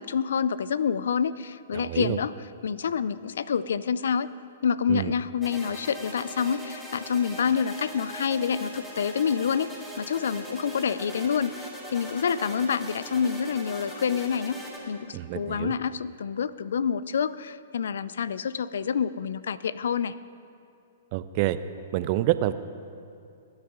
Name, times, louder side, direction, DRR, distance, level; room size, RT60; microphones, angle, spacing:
voice 1, 0.0-2.4 2.6-4.3 4.6-14.6 14.9-20.1, left 7 dB, 75° left, 17 dB, 0.4 m, -27 dB
voice 2, 1.7-2.2 4.9-5.1 15.1-15.7 21.1-21.6 21.9-22.5, right 15 dB, 45° right, 13 dB, 0.5 m, -27 dB
sound 1, 5.4-14.8, equal, 5° left, 3.3 m, -40 dB
21.0 x 9.6 x 3.7 m, 2.5 s
hypercardioid pair, 125°, 0 cm